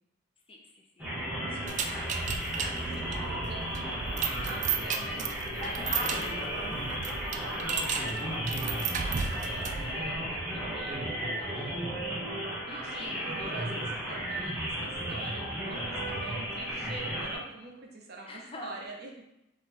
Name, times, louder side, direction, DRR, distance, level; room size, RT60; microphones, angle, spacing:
voice 1, 0.5-2.1 2.9-3.5 5.6-9.1 9.4-11.8 12.8-13.1 18.3-18.8, left 1 dB, 30° left, 0 dB, 0.6 m, -46 dB
sound 1, 1.0-17.4, equal, 10° right, 1.0 m, -34 dB
sound 2, 1.7-9.9, right 6 dB, 40° right, 0.3 m, -34 dB
voice 2, 2.4-5.9 12.7-19.3, right 3 dB, 55° right, 0 dB, 0.8 m, -45 dB
3.9 x 3.2 x 4.3 m, 0.85 s
head